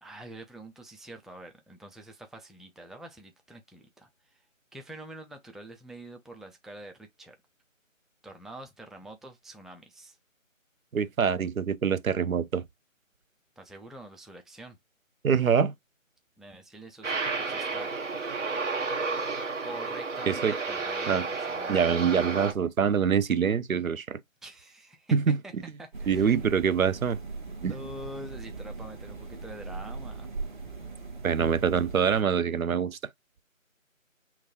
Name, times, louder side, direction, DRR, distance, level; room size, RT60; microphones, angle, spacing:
voice 1, 0.0-4.4 4.7-7.4 8.2-10.2 13.6-14.8 16.4-17.9 19.6-21.9 24.4-25.2 25.4-25.5 25.8-26.5 27.6-30.3, right 1 dB, ahead, 0.4 m, -45 dB
voice 2, 10.9-12.6 15.2-15.7 20.3-20.6 21.1-21.2 21.7-24.2 25.1-25.6 26.1-27.2 27.6-27.7 31.2-33.0, right 7 dB, 90° right, 0.7 m, -25 dB
Aircraft, 17.0-22.5, right 4 dB, 65° right, 1.3 m, -32 dB
sound 1, 25.9-32.2, right 3 dB, 35° right, 1.4 m, -40 dB
5.8 x 2.3 x 2.9 m
figure-of-eight pair, 170°, 40 cm